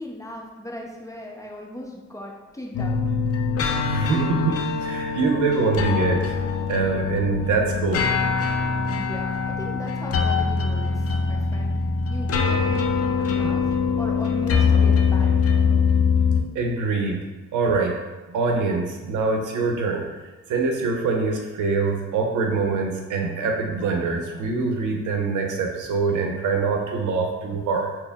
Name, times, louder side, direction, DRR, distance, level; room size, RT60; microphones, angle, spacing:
voice 1, 0.0-3.0 8.9-11.8 12.1-13.7 14.0-15.5, left 1 dB, 10° left, -1 dB, 0.6 m, -37 dB
sound 1, 2.7-16.4, left 5 dB, 50° left, 0.5 m, -23 dB
voice 2, 3.7-6.3 6.7-8.1 16.5-17.2 17.5-18.0 18.3-20.1 20.5-27.9, right 4 dB, 80° right, 2 dB, 0.7 m, -24 dB
4.2 x 2.1 x 3.4 m, 1.2 s
cardioid pair, 90°, 30 cm